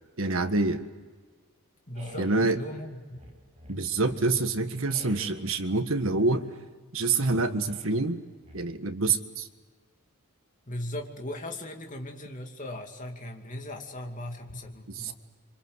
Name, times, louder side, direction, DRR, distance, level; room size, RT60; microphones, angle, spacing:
voice 1, 0.2-0.8 2.2-2.6 3.7-6.4 6.9-8.2 8.5-9.5 15.0-15.1, right 3 dB, 65° right, 8 dB, 1.6 m, -26 dB
voice 2, 1.9-3.0 3.3-3.4 10.7-15.1, left 1 dB, 35° left, 3 dB, 2.6 m, -38 dB
sound 1, 1.9-2.6 3.1-4.3 4.8-5.6 7.5-8.0 8.4-9.1, right 1 dB, 30° right, 5.4 m, -50 dB
27.0 x 25.5 x 8.1 m, 1.5 s
head